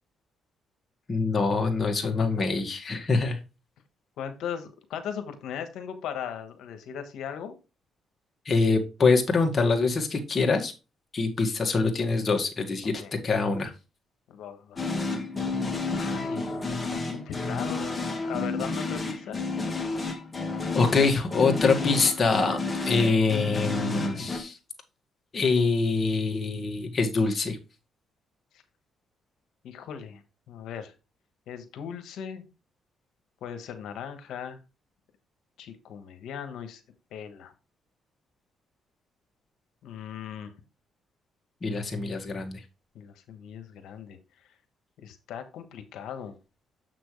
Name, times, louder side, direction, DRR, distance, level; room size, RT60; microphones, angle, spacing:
voice 1, 1.1-3.4 8.5-10.7 11.1-12.9 13.2-13.7 20.7-22.6 22.8-24.6 25.3-27.6 41.6-42.6, left 4 dB, 40° left, 3 dB, 1.8 m, -24 dB
voice 2, 4.2-7.5 13.0-13.1 14.3-14.8 15.9-19.4 29.6-30.2 30.5-30.9 31.5-32.4 33.4-34.6 35.6-36.8 37.1-37.5 39.8-40.5 42.9-44.2 44.4-44.5 45.0-46.4, left 8 dB, 80° left, 8 dB, 1.2 m, -38 dB
sound 1, 14.8-24.4, left 3 dB, 20° left, 1.8 m, -31 dB
7.3 x 6.1 x 3.2 m, 0.29 s
cardioid pair, 90°, 0 cm